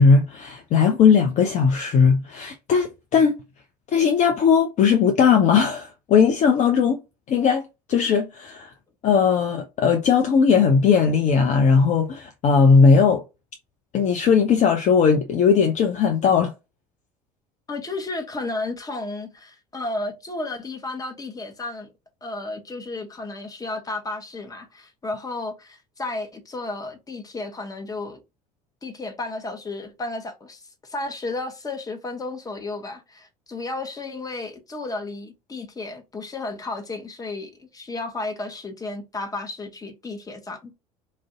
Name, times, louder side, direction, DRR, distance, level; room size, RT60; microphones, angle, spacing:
voice 1, 0.0-3.4 3.9-7.0 7.3-8.7 9.0-13.2 13.9-16.5, left 6 dB, 40° left, 0.5 m, -18 dB
voice 2, 17.7-21.9 22.2-28.2 28.8-40.7, left 2 dB, 20° left, 0.9 m, -33 dB
2.5 x 2.0 x 3.7 m
hypercardioid pair, 65°, 18 cm